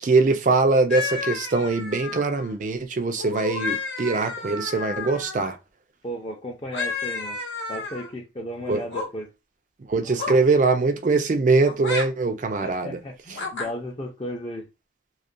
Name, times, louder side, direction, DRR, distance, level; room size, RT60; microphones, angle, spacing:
voice 1, 0.0-5.6 8.7-8.8 9.9-13.0, right 3 dB, 45° right, 0.4 m, -22 dB
sound 1, 0.9-2.5 3.2-5.6 6.7-8.1 8.8-9.1 10.2-10.5 11.6-12.1 13.3-13.7, left 4 dB, 85° left, 0.7 m, -31 dB
voice 2, 6.0-7.4 7.7-9.3 9.9-10.4 12.6-14.7, equal, 30° left, 0.5 m, -35 dB
2.4 x 2.2 x 2.5 m
head